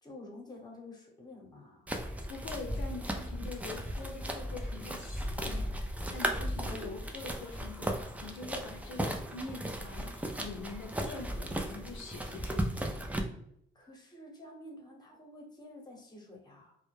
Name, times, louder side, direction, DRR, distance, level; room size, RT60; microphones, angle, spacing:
voice 1, 0.0-1.9 13.7-16.8, left 1 dB, 20° left, 0 dB, 0.9 m, -50 dB
sound 1, 1.9-13.2, right 1 dB, 5° right, 0.3 m, -36 dB
voice 2, 2.3-12.7, left 3 dB, 75° left, 2 dB, 0.5 m, -44 dB
2.1 x 2.1 x 3.0 m, 0.72 s
cardioid pair, 90°, 20 cm